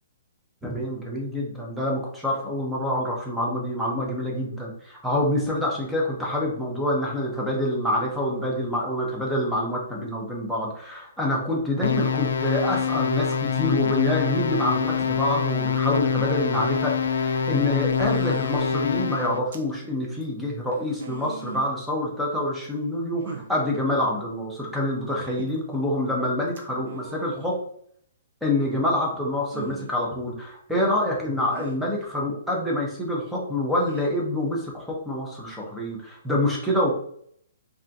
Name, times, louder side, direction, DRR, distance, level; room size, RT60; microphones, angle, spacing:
voice 1, 0.6-27.6 28.4-36.9, left 1 dB, ahead, -4 dB, 0.5 m, -26 dB
sound 1, 11.8-19.4, left 6 dB, 75° left, 0.3 m, -25 dB
sound 2, 17.9-18.8 19.5-19.7 20.2-20.3 20.7-21.7 22.6-22.7 23.2-23.5 25.2-25.5 26.5-27.3 29.4-29.9 31.5-31.7 33.8-34.1, right 5 dB, 55° right, 0.5 m, -39 dB
3.3 x 2.5 x 2.6 m, 0.64 s
hypercardioid pair, 175°, 0 cm